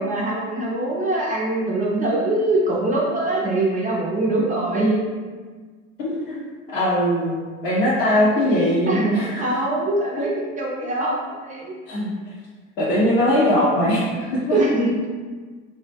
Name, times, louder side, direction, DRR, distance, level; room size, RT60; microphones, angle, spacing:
voice 1, 0.0-5.0 8.9-10.3 10.6-11.7 14.5-14.9, right 2 dB, 20° right, -4 dB, 0.4 m, -23 dB
voice 2, 6.0-6.4 6.7-9.4 10.2-10.3 11.9-12.1 12.8-14.0 14.3-14.6, left 1 dB, 80° left, -8 dB, 0.7 m, -20 dB
2.1 x 2.0 x 3.3 m, 1.5 s
hypercardioid pair, 80°, 38 cm